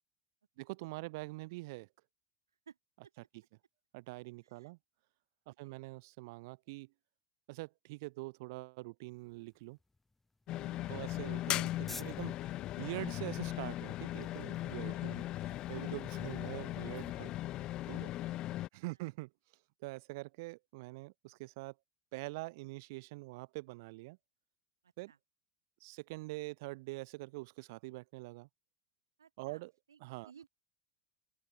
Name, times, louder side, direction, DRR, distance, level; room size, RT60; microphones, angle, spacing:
voice 1, 0.6-1.9 3.9-4.8 5.5-6.9 7.5-9.8 10.9-17.3 17.9-18.1 18.7-19.3 19.8-21.7 22.1-24.2 25.0-25.1 25.8-28.5 29.4-29.7 30.0-30.3, right 23 dB, 55° right, 1.0 m, -44 dB
Spray Can, 9.0-16.1, left 2 dB, 10° left, 6.2 m, -57 dB
sound 1, 10.5-18.7, left 15 dB, 40° left, 0.4 m, -38 dB
voice 2, 10.6-10.9 14.9-15.0 17.1-17.2 18.0-18.3 24.8-25.2 29.2-29.6 29.9-30.5, right 7 dB, 75° right, 5.2 m, -60 dB
open air
figure-of-eight pair, 75°, 2 cm